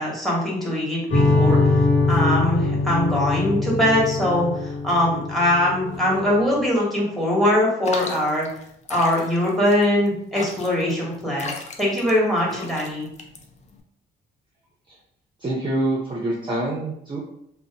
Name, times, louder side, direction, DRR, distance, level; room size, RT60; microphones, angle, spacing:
voice 1, 0.0-1.7 2.1-8.5 8.9-13.1, left 1 dB, ahead, -3 dB, 1.0 m, -22 dB
sound 1, 1.1-6.3, left 3 dB, 70° left, 0.9 m, -22 dB
sound 2, 7.8-13.8, left 4 dB, 35° left, 0.4 m, -36 dB
voice 2, 15.4-17.2, right 1 dB, 25° right, -3 dB, 0.5 m, -25 dB
2.5 x 2.0 x 2.7 m, 0.73 s
cardioid pair, 90°, 20 cm